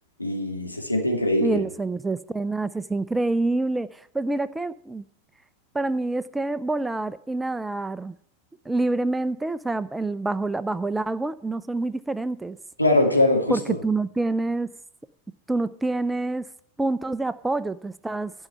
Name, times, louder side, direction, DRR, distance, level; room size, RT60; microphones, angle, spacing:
voice 1, 0.2-1.6 12.8-13.8, left 1 dB, 85° left, 2.2 m, -22 dB
voice 2, 1.4-5.0 5.7-8.2 8.7-12.6 13.5-14.7 15.5-16.5 16.8-18.3, right 2 dB, 5° right, 0.4 m, -27 dB
11.5 x 5.5 x 8.9 m
figure-of-eight pair, 90°, 0 cm